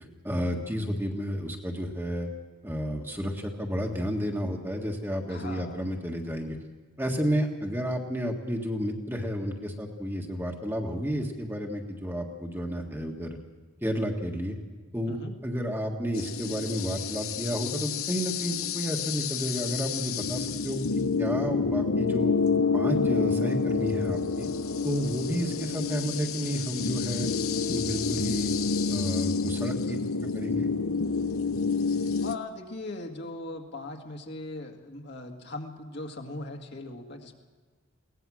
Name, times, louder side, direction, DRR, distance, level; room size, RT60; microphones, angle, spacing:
voice 1, 0.2-2.3 2.6-6.6 7.0-13.4 13.8-14.6 14.9-15.2 15.4-22.3 22.7-24.5 24.8-27.3 27.7-28.5 28.9-30.0 30.3-30.7, equal, 10° right, 2 dB, 1.6 m, -31 dB
voice 2, 5.3-5.8 15.1-15.4 29.8-30.1 32.2-37.3, left 2 dB, 55° left, 2 dB, 2.0 m, -39 dB
sound 1, 16.1-32.4, left 5 dB, 85° left, 0.9 m, -29 dB
22.5 x 18.0 x 6.3 m, 1.4 s
head